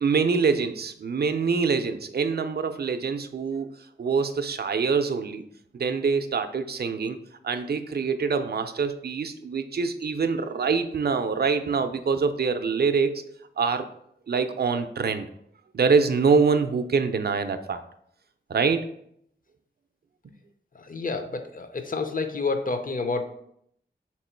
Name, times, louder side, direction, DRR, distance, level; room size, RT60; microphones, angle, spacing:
voice 1, 0.0-3.7 4.0-5.4 5.7-7.2 7.4-13.9 14.3-15.3 15.7-17.8 18.5-18.8, right 5 dB, 55° right, 9 dB, 0.4 m, -25 dB
voice 2, 20.7-23.2, left 3 dB, 45° left, 6 dB, 0.6 m, -29 dB
3.5 x 3.0 x 4.4 m, 0.70 s
wide cardioid pair, 50°, 20 cm